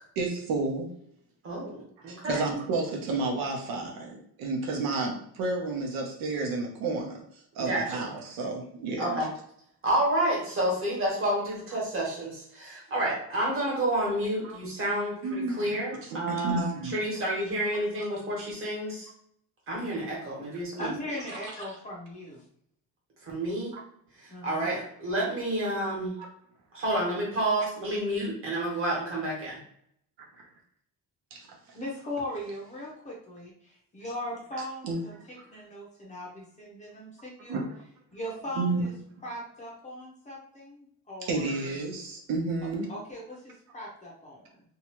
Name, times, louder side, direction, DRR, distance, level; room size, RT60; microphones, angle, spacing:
voice 1, 0.2-0.9 2.0-9.2 14.4-14.6 15.2-15.8 16.1-17.0 18.0-18.1 21.3-21.4 23.7-23.8 31.3-31.5 34.8-35.0 37.5-37.7 38.6-38.9 41.2-42.9, right 3 dB, 90° right, 0 dB, 0.8 m, -31 dB
voice 2, 1.4-2.4 7.6-8.1 9.0-9.3 9.8-19.1 19.7-20.9 23.2-23.7 24.2-26.2 26.7-29.6, right 1 dB, 35° right, -3 dB, 1.2 m, -29 dB
voice 3, 20.8-22.5 24.3-24.7 31.7-37.6 38.1-38.9 39.2-41.5 42.9-44.6, left 1 dB, 20° left, -4 dB, 0.6 m, -39 dB
2.8 x 2.3 x 2.9 m, 0.68 s
cardioid pair, 175°, 35 cm